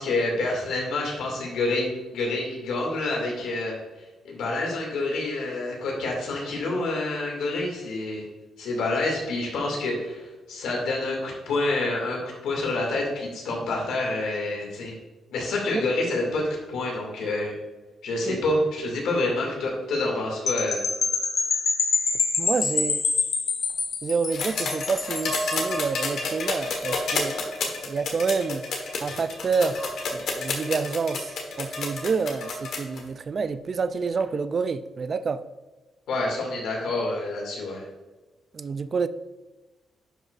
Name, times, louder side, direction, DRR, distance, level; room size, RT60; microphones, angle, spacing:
voice 1, 0.0-3.8 4.2-8.3 8.6-15.0 15.3-17.5 18.0-20.8 36.1-37.8, left 2 dB, 85° left, 2.2 m, -27 dB
sound 1, 20.5-25.8, left 4 dB, 55° left, 0.9 m, -26 dB
voice 2, 22.4-23.0 24.0-27.4 27.8-28.7 29.0-29.8 30.1-35.4 38.5-39.1, right 5 dB, 40° right, 0.4 m, -28 dB
sound 2, 24.3-33.0 34.2-34.3, left 3 dB, 70° left, 1.4 m, -30 dB
11.0 x 5.1 x 2.5 m
cardioid pair, 110°, 0 cm